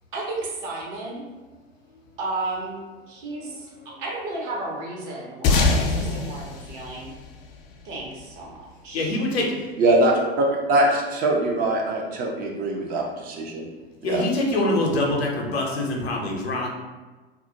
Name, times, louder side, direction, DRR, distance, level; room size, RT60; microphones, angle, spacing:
voice 1, 0.1-1.2 2.2-2.8 3.1-3.7 4.0-7.1 7.8-9.1, right 2 dB, 50° right, -3 dB, 0.9 m, -33 dB
sound 1, 5.4-8.2, left 3 dB, 40° left, 0.4 m, -24 dB
voice 2, 8.9-9.7 14.0-16.7, left 1 dB, 80° left, -1 dB, 0.6 m, -24 dB
voice 3, 9.8-13.6 14.0-14.2, right 1 dB, 30° right, 0 dB, 0.4 m, -22 dB
2.3 x 2.1 x 2.7 m, 1.2 s
figure-of-eight pair, 85°, 31 cm